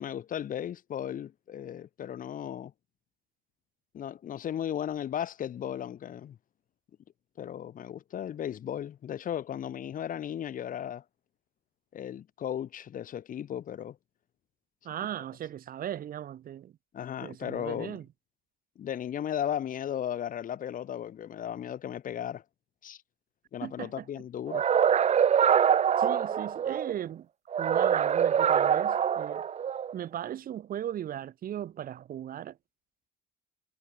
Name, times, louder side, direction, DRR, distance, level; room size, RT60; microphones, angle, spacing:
voice 1, 0.0-2.7 3.9-6.4 7.4-11.0 11.9-14.0 16.9-18.0 18.8-22.4 22.8-23.0 23.5-24.6, left 10 dB, 55° left, 3.9 m, -35 dB
voice 2, 14.8-16.7 17.2-18.1 23.6-24.1 26.0-27.3 27.6-29.4 29.9-32.6, right 11 dB, 60° right, 5.0 m, -37 dB
sound 1, 24.5-26.9 27.5-29.9, right 8 dB, 40° right, 1.2 m, -24 dB
cardioid pair, 110°, 17 cm